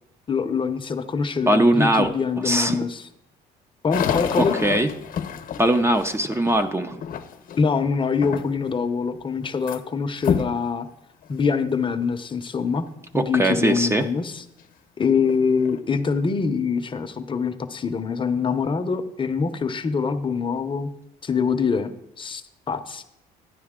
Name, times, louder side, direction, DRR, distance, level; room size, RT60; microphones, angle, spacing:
voice 1, 0.3-3.0 3.8-4.5 7.6-10.9 11.3-12.9 13.1-14.4 15.0-20.9 21.2-21.9 22.2-23.0, left 5 dB, 30° left, 9 dB, 0.7 m, -24 dB
voice 2, 1.5-2.1 2.4-2.8 4.4-4.9 5.6-7.0 13.1-14.1, right 1 dB, 15° right, 7 dB, 0.6 m, -20 dB
sound 1, 3.9-7.7 8.2-8.8 9.1-9.8 10.2-10.6 11.2-11.3 12.0-12.1 14.6-14.7 15.2-15.8, left 8 dB, 55° left, 0.9 m, -28 dB
11.5 x 9.5 x 3.7 m, 0.83 s
cardioid pair, 110°, 17 cm